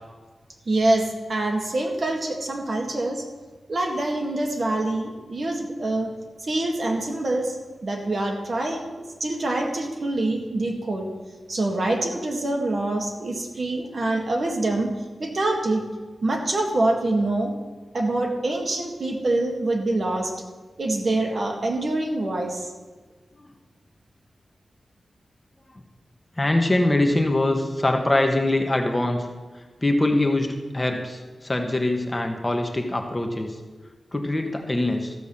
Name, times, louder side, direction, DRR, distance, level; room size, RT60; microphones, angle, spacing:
voice 1, 0.7-3.3 3.7-6.1 6.4-7.6 7.8-11.1 11.5-14.9 15.2-15.9 16.2-17.5 17.9-20.3 20.8-22.7, right 2 dB, 50° right, 1 dB, 2.0 m, -25 dB
voice 2, 26.4-29.3 29.5-33.6 34.1-35.1, left 1 dB, 20° left, 4 dB, 1.2 m, -23 dB
14.0 x 6.0 x 7.1 m, 1.4 s
wide cardioid pair, 110°, 0 cm